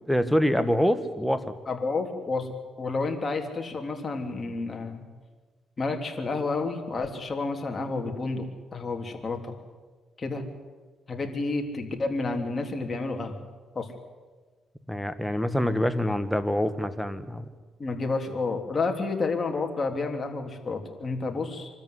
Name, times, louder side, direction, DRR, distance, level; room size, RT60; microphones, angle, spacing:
voice 1, 0.1-1.4 14.9-17.5, equal, ahead, 9 dB, 1.6 m, -25 dB
voice 2, 1.7-2.5 2.8-5.0 5.8-8.5 8.7-9.5 10.2-10.4 11.1-13.3 13.7-13.9 17.8-21.7, left 3 dB, 30° left, 3 dB, 3.3 m, -30 dB
25.0 x 13.5 x 10.0 m, 1.4 s
cardioid pair, 90°, 0 cm